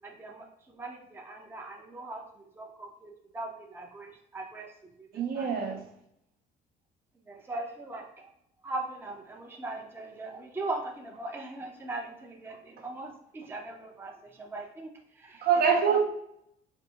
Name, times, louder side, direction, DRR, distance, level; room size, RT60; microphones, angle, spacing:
voice 1, 0.0-5.5 7.3-8.3 8.6-15.5 15.9-16.0, right 2 dB, 15° right, 1 dB, 0.6 m, -40 dB
voice 2, 5.1-5.8 15.4-16.0, right 6 dB, 60° right, 3 dB, 0.7 m, -24 dB
4.3 x 2.6 x 2.8 m, 0.73 s
cardioid pair, 110°, 17 cm